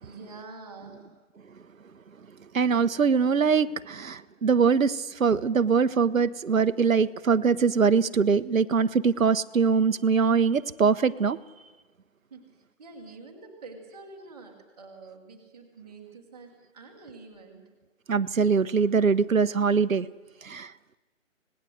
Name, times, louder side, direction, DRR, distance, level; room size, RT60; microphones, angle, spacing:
voice 1, 0.0-1.1 12.3-12.5 12.8-17.7, right 3 dB, 5° right, -7 dB, 1.3 m, -46 dB
voice 2, 2.5-11.4 18.1-20.1 20.4-21.0, right 5 dB, 85° right, 11 dB, 1.1 m, -23 dB
25.5 x 19.0 x 7.9 m, 1.2 s
hypercardioid pair, 175°, 39 cm